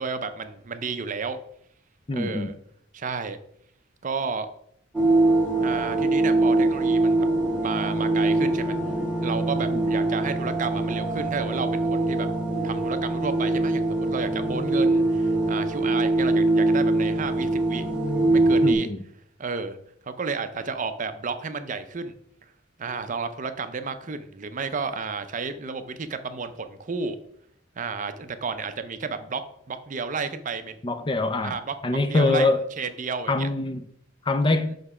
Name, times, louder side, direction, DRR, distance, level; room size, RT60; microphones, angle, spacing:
voice 1, 0.0-1.4 2.1-2.5 2.9-3.4 4.0-4.5 5.6-7.3 7.6-8.8 9.2-12.3 12.6-17.9 18.3-18.9 19.4-19.8 20.1-22.1 22.8-27.2 27.8-29.4 29.7-30.8 31.4-32.5 32.8-33.5, right 4 dB, 40° right, 0.5 m, -32 dB
voice 2, 2.1-2.5 9.7-9.9 18.6-19.0 30.8-31.6 31.8-32.6 33.3-33.8 34.3-34.8, left 2 dB, 25° left, 0.4 m, -24 dB
sound 1, 4.9-18.7, right 2 dB, 5° right, 1.3 m, -23 dB
5.9 x 5.2 x 4.8 m
head